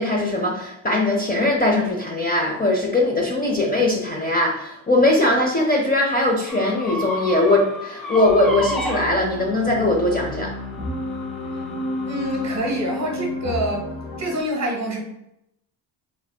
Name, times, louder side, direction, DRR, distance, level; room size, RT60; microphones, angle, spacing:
voice 1, 0.0-10.5, left 2 dB, 20° left, -1 dB, 0.5 m, -20 dB
sound 1, 6.5-12.6, equal, ahead, 1.0 m, -33 dB
sound 2, 8.2-14.4, left 1 dB, 45° left, 1.0 m, -31 dB
voice 2, 12.1-13.9 14.2-15.0, right 1 dB, 35° right, 1 dB, 0.9 m, -26 dB
4.0 x 3.4 x 2.2 m, 0.82 s
cardioid pair, 105°, 49 cm